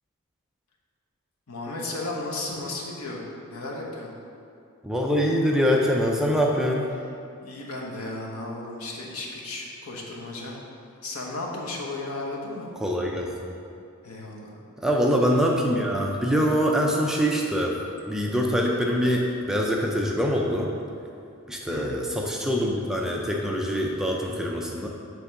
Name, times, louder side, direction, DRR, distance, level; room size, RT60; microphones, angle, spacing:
voice 1, 1.5-3.2 3.5-4.1 7.4-10.6 11.0-12.7 14.0-14.6 21.7-22.0, left 2 dB, 80° left, -2 dB, 1.2 m, -34 dB
voice 2, 4.8-6.9 12.8-13.5 14.8-17.8 18.1-20.7 21.5-24.9, equal, ahead, -1 dB, 0.4 m, -24 dB
8.0 x 3.5 x 5.9 m, 2.5 s
head